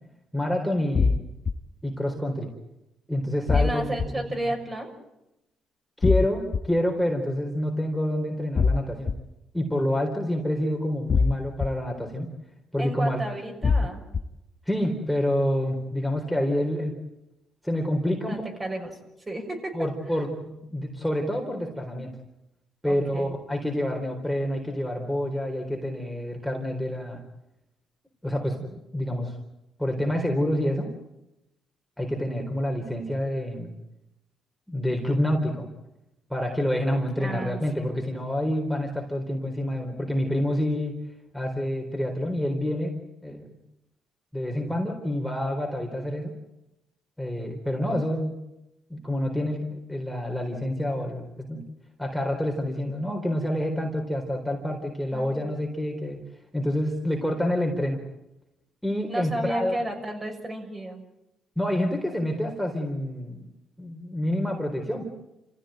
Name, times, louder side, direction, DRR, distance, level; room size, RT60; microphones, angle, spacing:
voice 1, 0.3-1.2 1.8-2.5 3.1-3.9 6.0-9.1 9.5-12.3 12.7-13.2 14.7-16.9 17.6-18.4 19.7-22.1 22.8-27.2 28.2-29.4 29.8-30.9 32.0-33.7 34.7-35.7 36.3-41.0 41.3-42.9 43.2-43.5 44.3-46.3 47.2-48.3 48.9-51.2 51.5-51.6 52.0-56.2 56.5-58.0 58.8-59.8 61.6-63.4 63.8-65.1, left 1 dB, ahead, 1 dB, 4.1 m, -27 dB
sound 1, 0.9-1.5 3.5-4.1 6.0-6.6 8.6-9.1 11.1-11.7 13.6-14.2, left 4 dB, 40° left, 1.2 m, -22 dB
voice 2, 3.5-4.9 12.8-14.0 18.2-19.0 19.3-19.9 22.9-23.3 37.2-37.9 55.1-55.5 59.1-61.0, right 1 dB, 25° right, 3 dB, 6.4 m, -32 dB
28.5 x 16.0 x 9.3 m, 0.90 s
cardioid pair, 90°, 0 cm